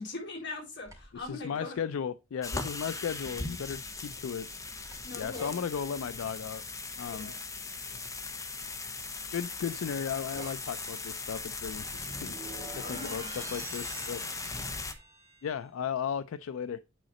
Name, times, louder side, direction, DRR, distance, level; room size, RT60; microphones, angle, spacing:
voice 1, 0.0-1.8 2.4-2.5 4.9-5.6 7.0-7.4 12.8-13.3, left 3 dB, 60° left, 3.9 m, -41 dB
sound 1, 0.8-1.3 3.2-5.6 9.1-15.5, right 2 dB, 15° right, 2.3 m, -48 dB
voice 2, 1.1-4.5 5.2-6.6 7.0-7.3 9.3-12.3 12.7-14.2 15.4-16.8, left 7 dB, 85° left, 0.4 m, -35 dB
sound 2, 2.4-14.9, left 3 dB, 15° left, 0.9 m, -39 dB
9.2 x 4.0 x 4.1 m
head